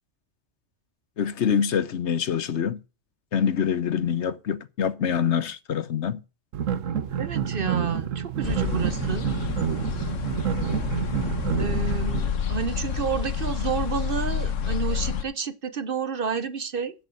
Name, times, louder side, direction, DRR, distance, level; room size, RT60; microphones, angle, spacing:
voice 1, 1.2-2.8 3.3-6.2, left 8 dB, 65° left, 1.1 m, -25 dB
sound 1, 6.5-12.2, right 8 dB, 90° right, 1.3 m, -28 dB
voice 2, 7.2-9.3 11.6-16.9, right 6 dB, 50° right, 0.9 m, -30 dB
sound 2, 8.4-15.2, left 7 dB, 90° left, 1.4 m, -29 dB
9.0 x 7.7 x 6.2 m
omnidirectional pair, 1.3 m